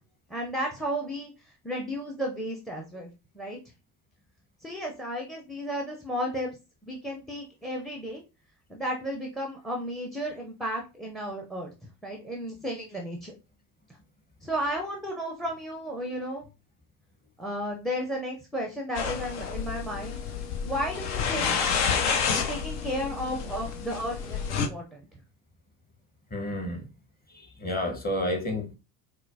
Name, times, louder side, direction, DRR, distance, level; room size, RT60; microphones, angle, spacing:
voice 1, 0.3-3.6 4.6-6.5 6.8-8.2 8.7-13.3 14.4-16.5 17.4-20.2 20.6-21.5 22.5-25.0, equal, ahead, 0.5 m, -33 dB
sound 1, 18.9-24.7, left 6 dB, 70° left, 0.7 m, -29 dB
voice 2, 26.3-26.9 27.3-28.8, left 1 dB, 20° left, 1.0 m, -30 dB
4.2 x 2.0 x 2.6 m
hypercardioid pair, 70°, 48 cm